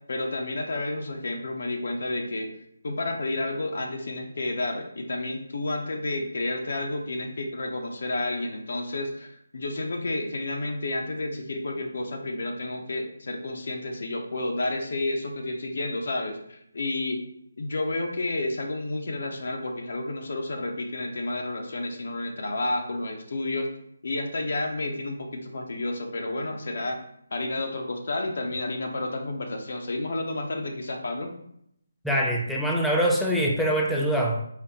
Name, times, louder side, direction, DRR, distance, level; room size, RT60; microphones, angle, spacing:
voice 1, 0.1-2.5 2.8-17.2 17.6-23.7 24.0-27.0 27.3-31.4, left 2 dB, 60° left, 3 dB, 0.7 m, -30 dB
voice 2, 32.0-34.5, equal, ahead, -3 dB, 0.4 m, -24 dB
4.1 x 2.1 x 4.0 m, 0.71 s
figure-of-eight pair, 160°, 0 cm